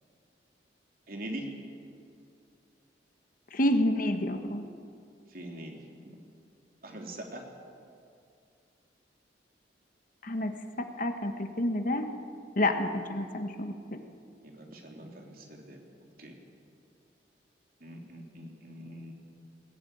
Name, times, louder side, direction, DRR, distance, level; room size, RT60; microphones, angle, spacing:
voice 1, 1.1-1.5 5.3-6.2 6.8-7.4 14.4-15.8 16.2-16.4 17.8-19.1, right 1 dB, 55° right, 1 dB, 3.4 m, -43 dB
voice 2, 3.5-4.6 10.2-10.5 10.8-12.1 12.6-14.0, left 1 dB, 50° left, 6 dB, 1.6 m, -29 dB
21.0 x 18.0 x 9.4 m, 2.4 s
head